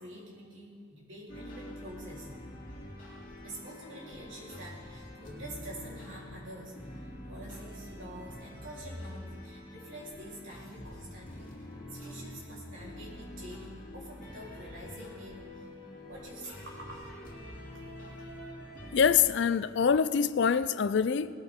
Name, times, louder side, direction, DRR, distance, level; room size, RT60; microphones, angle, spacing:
voice 1, 0.0-2.3 3.4-11.5 11.9-15.7 16.1-17.1 18.1-18.4, right 1 dB, 70° right, 3.7 m, -47 dB
sound 1, 1.3-19.3, left 1 dB, 40° left, 2.7 m, -46 dB
voice 2, 18.9-21.3, left 7 dB, 60° left, 0.4 m, -25 dB
19.0 x 13.0 x 3.7 m
head